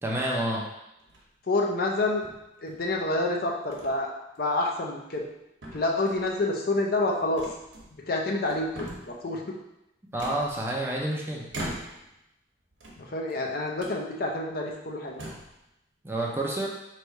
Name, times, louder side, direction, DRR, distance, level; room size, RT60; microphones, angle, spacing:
voice 1, 0.0-0.6 10.1-11.5 16.0-16.7, right 1 dB, 10° right, -2 dB, 0.5 m, -29 dB
sound 1, 1.0-1.4 2.2-3.0 3.7-4.0 4.4-4.5 5.0-5.4 5.6-6.3 7.4-8.1 8.4-9.2 10.2-11.0 11.5-12.2 12.7-13.4 13.8-14.0 14.6-14.7 15.1-15.6, right 1 dB, 85° right, 1.0 m, -41 dB
voice 2, 1.4-2.2 2.6-4.1 4.4-5.3 5.7-7.5 8.0-9.6 13.0-15.1, left 2 dB, 50° left, 0 dB, 0.5 m, -28 dB
3.2 x 2.6 x 4.5 m, 0.89 s
head